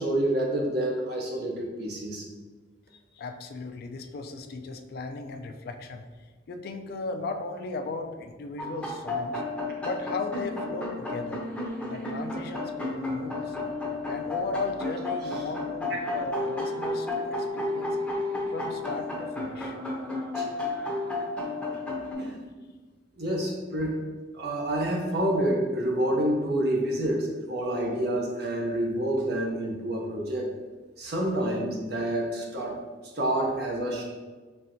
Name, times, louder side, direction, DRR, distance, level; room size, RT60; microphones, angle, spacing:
voice 1, 0.0-2.2 20.4-20.5 22.2-22.5 23.2-24.0 24.3-30.5 31.0-32.8 33.2-34.0, right 1 dB, 60° right, -1 dB, 0.6 m, -28 dB
voice 2, 3.2-6.0 6.5-9.4 9.8-11.4 11.9-13.6 14.0-18.0 18.5-19.8, left 3 dB, 55° left, 5 dB, 0.3 m, -36 dB
sound 1, 8.6-22.1, left 2 dB, 5° left, 0.6 m, -32 dB
4.3 x 3.2 x 2.6 m, 1.4 s
head